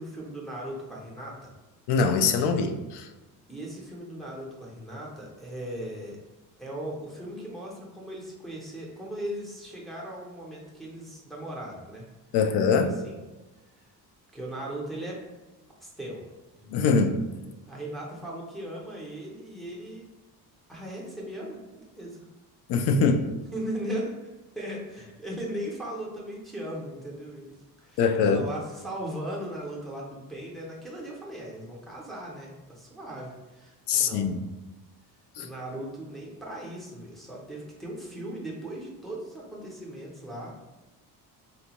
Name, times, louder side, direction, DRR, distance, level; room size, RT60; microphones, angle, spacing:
voice 1, 0.0-1.5 3.5-6.2 6.6-12.1 13.0-13.2 14.3-15.2 15.8-16.3 16.6-16.7 17.7-20.0 20.7-22.3 23.5-24.2 24.6-34.3 35.4-40.5, right 1 dB, ahead, -4 dB, 0.5 m, -38 dB
voice 2, 1.9-3.1 12.3-12.9 16.7-17.2 22.7-23.3 28.0-28.4 33.9-34.4 35.4-35.5, left 5 dB, 85° left, 6 dB, 0.5 m, -23 dB
4.0 x 2.2 x 2.8 m, 1.1 s
cardioid pair, 170°, 39 cm